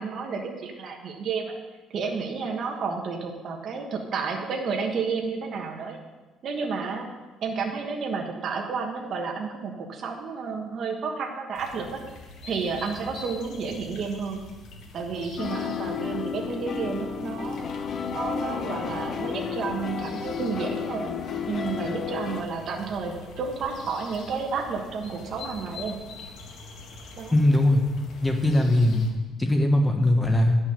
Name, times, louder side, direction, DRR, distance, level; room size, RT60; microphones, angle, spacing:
voice 1, 0.0-1.5 1.9-6.0 6.4-7.1 7.4-12.0 12.4-14.4 14.9-17.7 18.1-21.1 21.5-25.9 27.2-27.3, right 5 dB, 45° right, 1 dB, 1.4 m, -31 dB
sound 1, 11.5-29.1, left 3 dB, 65° left, 1.8 m, -45 dB
sound 2, 15.4-22.4, left 6 dB, 40° left, 0.6 m, -32 dB
voice 2, 27.3-27.8 28.2-29.1 29.4-30.6, left 1 dB, 10° left, 3 dB, 1.2 m, -20 dB
10.5 x 6.2 x 6.7 m, 1.2 s
cardioid pair, 160°, 0 cm